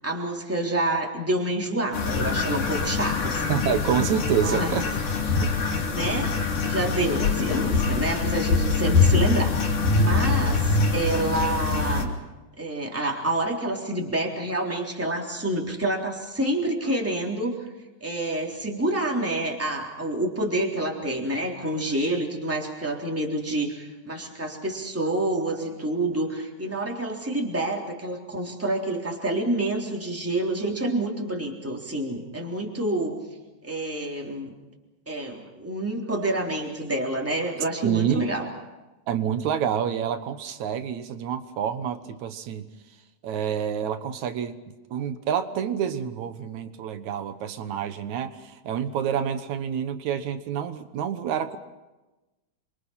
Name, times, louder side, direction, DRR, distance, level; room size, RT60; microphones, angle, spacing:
voice 1, 0.0-3.5 4.4-4.7 5.3-5.4 5.9-12.2 12.6-17.7 18.0-33.1 33.6-34.5 35.1-38.5, right 1 dB, 5° right, 0 dB, 3.3 m, -28 dB
sound 1, 1.9-12.0, left 4 dB, 85° left, 4.5 m, -24 dB
voice 2, 3.5-4.8 5.4-5.5 37.8-38.3 39.1-42.6 43.2-44.6 44.9-48.4 48.7-51.6, right 8 dB, 70° right, 10 dB, 2.6 m, -27 dB
29.0 x 24.0 x 5.8 m, 1.1 s
omnidirectional pair, 3.6 m